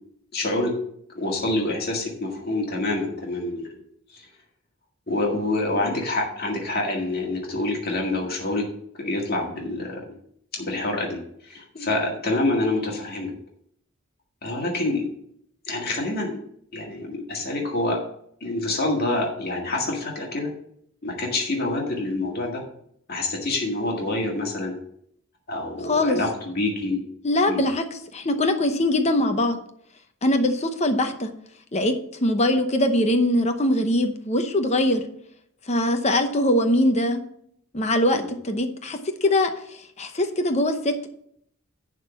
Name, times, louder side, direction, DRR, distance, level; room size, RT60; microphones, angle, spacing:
voice 1, 0.3-0.7 1.2-3.8 4.1-4.2 5.1-8.6 9.0-10.0 10.5-13.3 14.4-15.1 15.7-16.4 16.7-18.0 18.4-20.5 21.0-22.6 23.1-24.7 25.5-27.0 27.5-27.7 38.1-38.3, left 2 dB, 45° left, -1 dB, 1.8 m, -26 dB
voice 2, 25.8-26.2 27.2-29.6 30.2-31.3 31.7-35.0 35.7-37.2 37.7-41.1, left 1 dB, 30° left, 6 dB, 0.9 m, -22 dB
11.0 x 3.8 x 7.1 m, 0.69 s
head